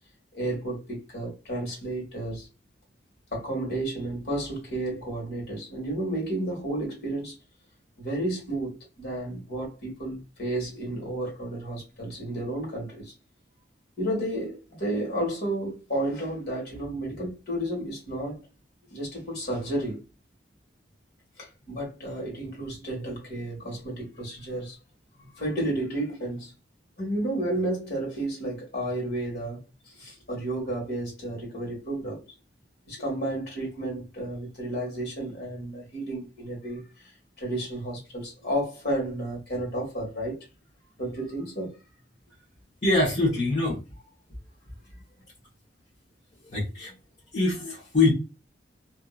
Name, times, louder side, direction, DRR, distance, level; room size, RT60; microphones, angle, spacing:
voice 1, 0.3-2.5 3.3-7.3 8.0-13.1 14.0-18.4 18.9-20.0 21.4-24.8 25.2-26.5 27.0-32.2 32.9-37.1 37.4-40.4 41.0-41.8 44.9-45.0, right 1 dB, 60° left, 1.7 m, -32 dB
voice 2, 42.8-44.1 46.4-46.9 47.3-48.1, left 2 dB, 40° left, 1.1 m, -24 dB
2.8 x 2.7 x 2.4 m
head